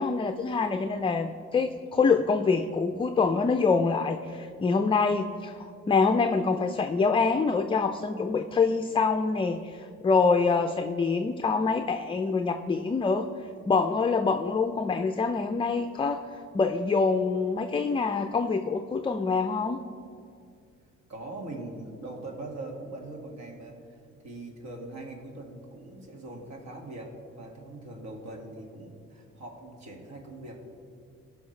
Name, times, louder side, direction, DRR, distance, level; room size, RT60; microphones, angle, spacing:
voice 1, 0.0-13.3 13.7-16.2 16.5-19.8, left 4 dB, 20° left, 7 dB, 0.4 m, -25 dB
voice 2, 21.1-24.0 24.2-30.7, right 2 dB, 65° right, 1 dB, 2.0 m, -41 dB
17.5 x 5.8 x 3.2 m, 2.3 s
cardioid pair, 85°, 30 cm